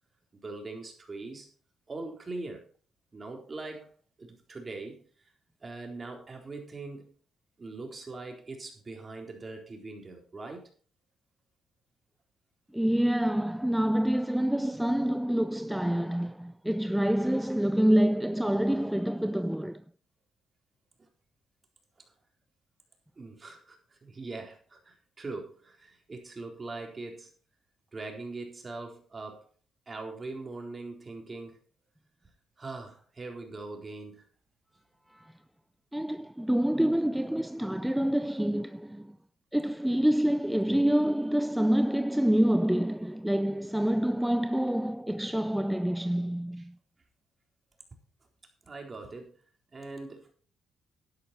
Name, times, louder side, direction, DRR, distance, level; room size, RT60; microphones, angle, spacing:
voice 1, 0.3-1.5 1.9-2.7 3.1-3.9 4.2-5.0 5.6-7.1 7.6-10.7 21.0-21.1 22.0-22.1 23.2-27.3 27.9-29.4 29.9-31.6 32.6-34.3 46.6-46.7 48.6-49.3 49.7-50.3, right 3 dB, 30° right, 3.9 m, -41 dB
voice 2, 12.7-19.8 35.1-35.3 35.9-39.1 39.5-46.7, right 1 dB, 5° right, 0.5 m, -27 dB
11.5 x 10.5 x 4.3 m
cardioid pair, 90°, 0 cm